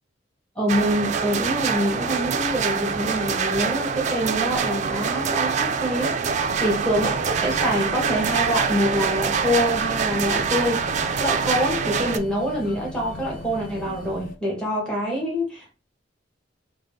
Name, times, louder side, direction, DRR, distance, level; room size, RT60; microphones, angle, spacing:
voice 1, 0.6-6.2 6.6-10.8 11.2-15.7, equal, 5° left, 1.0 m, -25 dB
sound 1, 0.7-12.2, right 6 dB, 40° right, 0.3 m, -25 dB
sound 2, 6.4-14.4, left 2 dB, 50° left, 0.5 m, -39 dB
3.7 x 2.1 x 3.4 m
head